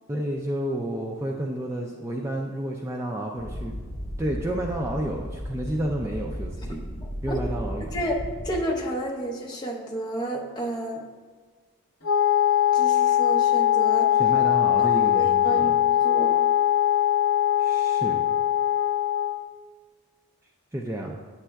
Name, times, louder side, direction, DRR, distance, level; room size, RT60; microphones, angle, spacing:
voice 1, 0.1-3.8 4.2-6.9 7.2-8.0 14.1-15.8 17.6-18.3 20.7-21.2, right 1 dB, 15° right, 0 dB, 0.3 m, -30 dB
sound 1, 3.4-8.6, equal, 55° left, 1.2 m, -35 dB
voice 2, 8.4-11.0 12.7-14.1 14.8-14.9 15.1-16.4, right 1 dB, 20° left, -1 dB, 0.6 m, -31 dB
Wind instrument woodwind instrument, 12.0-19.5, left 11 dB, 70° left, 0.7 m, -21 dB
8.7 x 7.2 x 2.3 m, 1.5 s
head